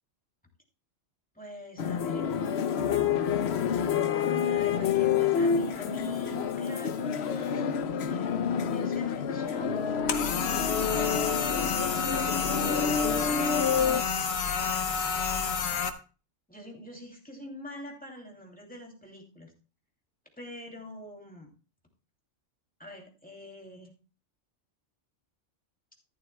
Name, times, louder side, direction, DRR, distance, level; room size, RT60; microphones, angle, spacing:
voice 1, 1.3-2.3 4.4-7.7 7.9-9.8 16.5-19.5 20.4-21.5 22.8-23.9, equal, 5° left, 0 dB, 2.7 m, -45 dB
sound 1, 1.8-14.0, left 7 dB, 60° left, 0.9 m, -28 dB
sound 2, 10.1-15.9, left 5 dB, 85° left, 1.4 m, -30 dB
13.5 x 11.5 x 2.2 m, 0.35 s
omnidirectional pair, 1.3 m